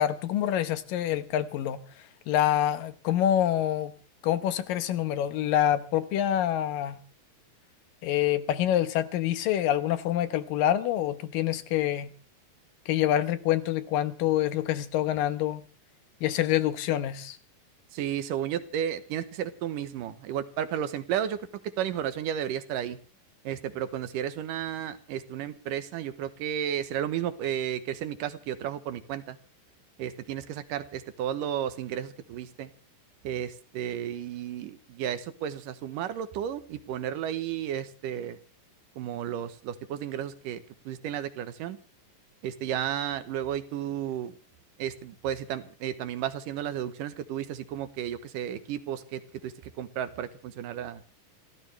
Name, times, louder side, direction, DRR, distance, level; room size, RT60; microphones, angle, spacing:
voice 1, 0.0-1.8 2.3-3.9 4.2-7.0 8.0-12.1 12.9-15.6 16.2-17.4, left 11 dB, 85° left, 11 dB, 2.8 m, -26 dB
voice 2, 17.9-21.4 21.8-23.0 23.5-29.4 30.0-32.7 33.2-38.4 39.0-41.8 42.4-44.3 44.8-49.5 49.8-51.0, right 10 dB, 80° right, 11 dB, 2.7 m, -33 dB
29.0 x 14.0 x 3.3 m, 0.37 s
omnidirectional pair, 3.9 m